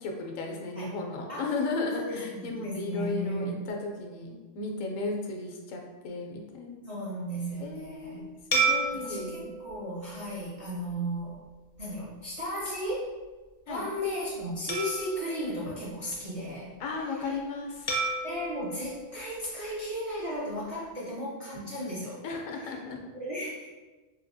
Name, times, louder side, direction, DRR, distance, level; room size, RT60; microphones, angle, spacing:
voice 1, 0.0-6.8 7.6-9.5 13.7-13.8 16.8-17.9 21.5-21.7 22.2-23.0, left 3 dB, 80° left, 2 dB, 1.0 m, -35 dB
voice 2, 1.9-3.6 6.8-8.4 8.9-11.4 11.8-13.1 13.7-16.8 17.1-17.4 18.2-22.2 23.1-23.7, equal, 45° right, -7 dB, 0.4 m, -35 dB
sound 1, 8.5-11.2 11.8-12.0 14.7-16.5 17.9-20.2, right 3 dB, 50° left, 0.6 m, -33 dB
3.4 x 2.7 x 2.6 m, 1.3 s
omnidirectional pair, 1.3 m